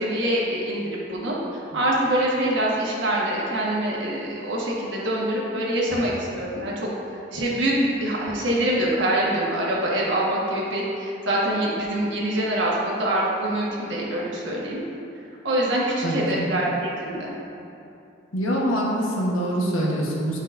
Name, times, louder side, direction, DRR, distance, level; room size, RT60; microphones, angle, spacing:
voice 1, 0.0-14.8 15.4-17.3, right 1 dB, 65° right, -5 dB, 1.4 m, -25 dB
voice 2, 16.0-16.5 18.3-20.4, equal, 85° left, -3 dB, 1.2 m, -24 dB
10.0 x 5.1 x 2.6 m, 2.7 s
head